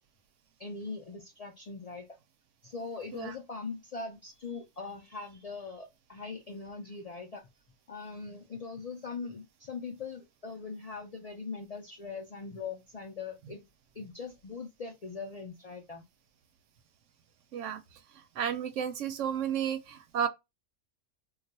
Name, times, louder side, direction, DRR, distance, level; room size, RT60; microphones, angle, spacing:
voice 1, 0.6-2.1 2.6-7.5 7.9-13.6 13.9-16.0, left 4 dB, 80° left, 0.3 m, -41 dB
voice 2, 18.4-20.3, right 8 dB, 70° right, 0.8 m, -32 dB
2.4 x 2.3 x 4.0 m
omnidirectional pair, 1.4 m